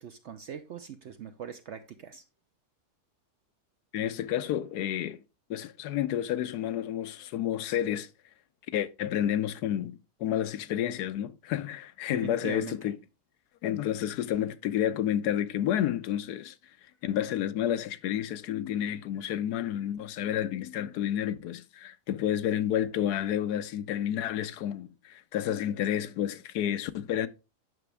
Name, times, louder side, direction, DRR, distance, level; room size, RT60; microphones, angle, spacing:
voice 1, 0.0-2.2 12.1-12.8, right 8 dB, 65° right, 0.7 m, -41 dB
voice 2, 3.9-5.2 5.5-8.1 8.7-13.0 13.6-16.5 17.0-27.3, left 11 dB, 80° left, 1.2 m, -30 dB
9.3 x 6.0 x 3.3 m
omnidirectional pair, 1.7 m